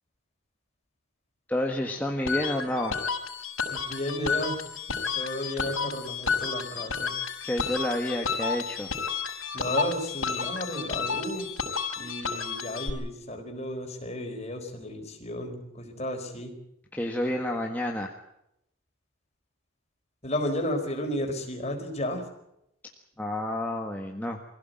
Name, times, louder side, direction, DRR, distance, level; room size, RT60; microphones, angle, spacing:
voice 1, 1.5-3.0 7.4-8.9 16.9-18.1 23.2-24.4, left 1 dB, 10° left, 0 dB, 1.6 m, -29 dB
sound 1, 2.3-12.9, left 5 dB, 85° left, 5.2 m, -31 dB
voice 2, 3.7-4.6 4.9-7.1 9.5-11.5 12.0-16.5 20.2-22.3, left 1 dB, 30° left, 3 dB, 4.6 m, -33 dB
24.0 x 16.5 x 9.3 m, 0.81 s
head